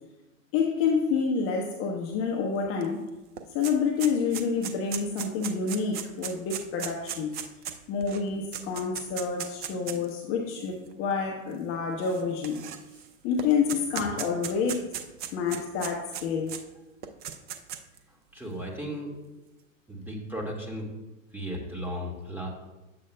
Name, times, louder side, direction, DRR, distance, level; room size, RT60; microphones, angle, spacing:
voice 1, 0.5-3.0 3.5-7.4 7.9-12.6 13.2-14.9 15.3-16.5, left 5 dB, 35° left, 2 dB, 0.9 m, -28 dB
sound 1, 2.8-2.9 3.1-10.1 10.9-11.0 12.0-13.1 13.4-16.6 17.0-18.0, right 9 dB, 25° right, 0.5 m, -37 dB
voice 2, 18.3-19.1 19.9-20.9 21.3-22.5, equal, 5° right, -2 dB, 1.8 m, -35 dB
10.5 x 7.7 x 2.2 m, 1.0 s
hypercardioid pair, 120°, 40 cm